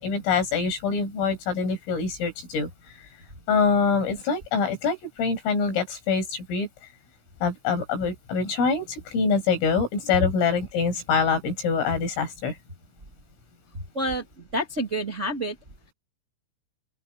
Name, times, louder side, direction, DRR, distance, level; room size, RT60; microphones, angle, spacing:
voice 1, 0.0-3.1 3.5-6.7 7.4-12.6, left 5 dB, 90° left, 9.7 m, -25 dB
voice 2, 13.7-15.5, right 1 dB, 25° right, 1.7 m, -29 dB
open air
omnidirectional pair, 5.7 m